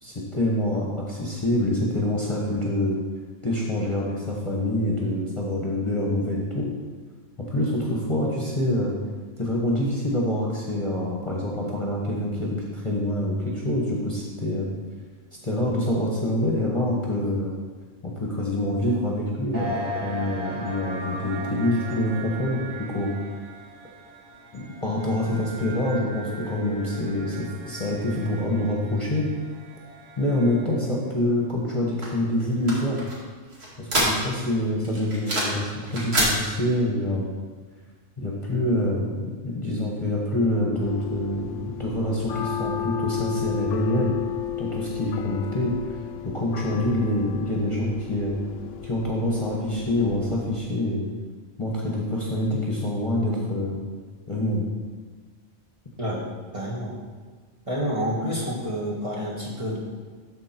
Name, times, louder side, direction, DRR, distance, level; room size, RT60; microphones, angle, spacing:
voice 1, 0.0-3.0 3.4-6.7 7.4-8.9 9.4-14.7 15.4-17.5 18.0-23.1 24.5-29.3 30.2-33.0 33.8-37.3 38.2-44.1 44.6-46.0 46.2-48.3 48.8-51.1 51.6-53.8 54.3-54.7, left 1 dB, 25° left, -3 dB, 1.3 m, -26 dB
sound 1, 19.5-30.9, right 1 dB, 75° right, 1.6 m, -38 dB
sound 2, 32.0-34.5 34.8-35.6 35.9-36.3, right 1 dB, 55° right, 2.4 m, -26 dB
sound 3, 40.8-50.6, left 11 dB, 75° left, 0.9 m, -34 dB
voice 2, 56.5-57.0 57.7-59.8, equal, 25° right, -5 dB, 1.7 m, -28 dB
13.0 x 4.5 x 4.4 m, 1.5 s
omnidirectional pair, 1.3 m